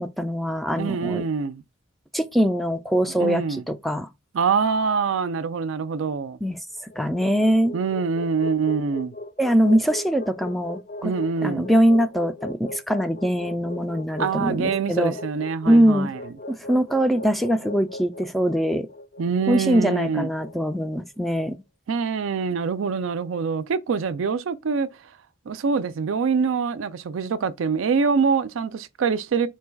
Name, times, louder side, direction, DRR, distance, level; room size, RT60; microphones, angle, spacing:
voice 1, 0.0-1.2 2.1-3.4 3.7-4.1 6.4-6.6 7.0-7.7 9.4-11.1 11.4-15.1 15.7-16.1 16.5-18.9 19.5-21.6, equal, ahead, 0.3 m, -22 dB
voice 2, 0.8-1.6 3.1-3.6 4.3-6.4 7.7-9.1 11.0-11.7 14.2-16.3 19.2-20.3 21.9-24.9 25.5-29.5, right 5 dB, 70° right, 0.4 m, -25 dB
sound 1, 6.8-21.0, left 2 dB, 50° left, 0.6 m, -38 dB
4.5 x 2.3 x 4.4 m
head